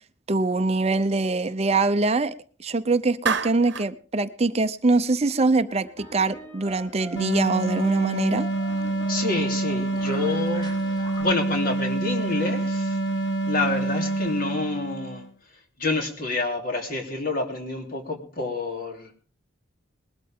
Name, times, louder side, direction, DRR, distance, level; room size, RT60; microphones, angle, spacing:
voice 1, 0.3-2.3 2.6-8.5, right 3 dB, 35° right, 11 dB, 0.6 m, -23 dB
Clapping, 3.3-3.9, right 6 dB, 65° right, 1.0 m, -27 dB
sound 1, 5.7-11.2, left 1 dB, 25° left, 6.3 m, -43 dB
sound 2, 7.2-15.3, right 2 dB, 70° left, 1.5 m, -27 dB
voice 2, 9.1-13.0 13.5-15.2 15.8-19.2, left 2 dB, 50° left, 3 dB, 3.3 m, -28 dB
20.5 x 13.0 x 3.6 m, 0.42 s
head